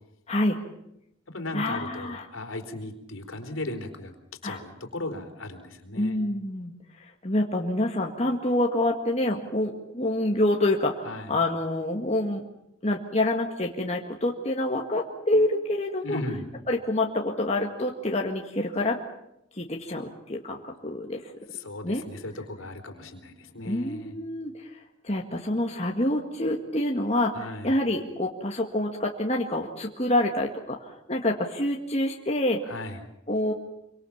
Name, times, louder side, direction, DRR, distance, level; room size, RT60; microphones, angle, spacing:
voice 1, 0.3-0.6 1.5-2.3 4.4-4.6 6.0-12.4 12.8-16.2 16.7-19.0 19.5-21.3 21.8-22.0 23.6-32.6 33.3-33.5, left 1 dB, 30° left, 1 dB, 1.8 m, -27 dB
voice 2, 1.3-4.1 4.4-6.2 11.0-11.3 16.0-16.4 21.6-24.1 27.3-27.8 32.6-33.0, left 2 dB, 70° left, 5 dB, 3.8 m, -36 dB
26.5 x 24.5 x 7.3 m, 0.85 s
head